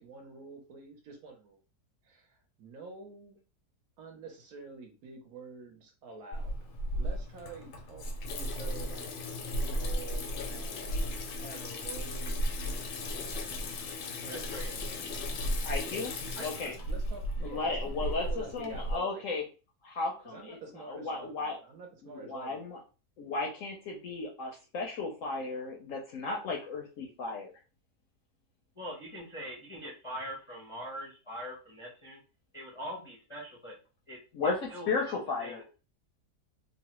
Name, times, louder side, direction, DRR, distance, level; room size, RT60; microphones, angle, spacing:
voice 1, 0.0-1.6 2.0-3.4 4.0-6.6 6.9-9.1 9.4-12.4 12.9-15.4 15.8-19.5 20.2-22.8, right 4 dB, 65° right, 2 dB, 1.1 m, -48 dB
Water tap faucet / Sink (filling or washing), 6.3-19.0, equal, 90° left, 1.2 m, -35 dB
voice 2, 14.3-14.7 16.4-16.7 28.8-32.2 32.5-33.8 34.1-35.6, equal, 35° left, -5 dB, 0.4 m, -43 dB
voice 3, 15.6-16.1 16.4-16.7 17.4-18.2 18.5-19.4 19.8-20.6 20.9-21.6 22.0-22.8 23.2-27.5 34.3-34.6 34.9-35.6, left 3 dB, 65° left, 0 dB, 0.8 m, -34 dB
3.1 x 2.1 x 2.9 m, 0.34 s
omnidirectional pair, 1.8 m